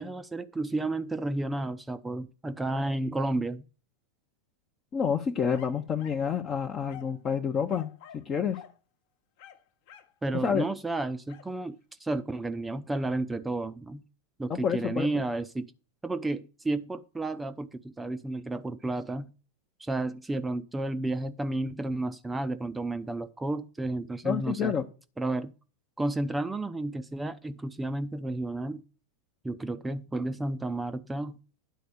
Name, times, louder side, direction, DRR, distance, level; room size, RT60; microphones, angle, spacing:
voice 1, 0.0-3.6 10.2-14.0 14.4-15.7 16.0-19.3 19.8-24.7 25.2-25.5 26.0-28.8 29.4-31.4, right 2 dB, 10° right, 0.5 m, -32 dB
voice 2, 4.9-8.6 10.4-10.6 14.5-15.1 24.2-24.8, left 7 dB, 25° left, 0.7 m, -29 dB
sound 1, 5.5-6.3 6.9-7.2 7.7-8.3 8.5-8.8 9.4-10.2 11.3-11.5, left 9 dB, 50° left, 1.0 m, -50 dB
10.5 x 4.3 x 6.5 m
figure-of-eight pair, 90°, 0 cm